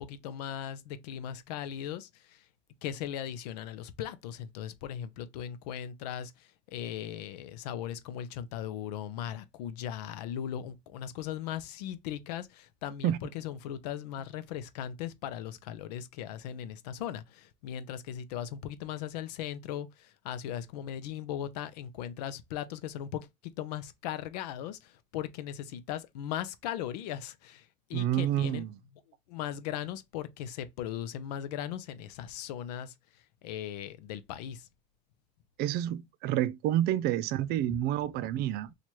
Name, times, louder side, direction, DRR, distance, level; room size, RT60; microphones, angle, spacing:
voice 1, 0.0-2.5 2.8-28.6 29.3-34.7 37.7-37.8, left 10 dB, 90° left, 0.6 m, -38 dB
voice 2, 27.9-28.7 35.6-38.7, right 12 dB, 55° right, 0.4 m, -29 dB
3.0 x 2.4 x 4.3 m
supercardioid pair, 110°, 20 cm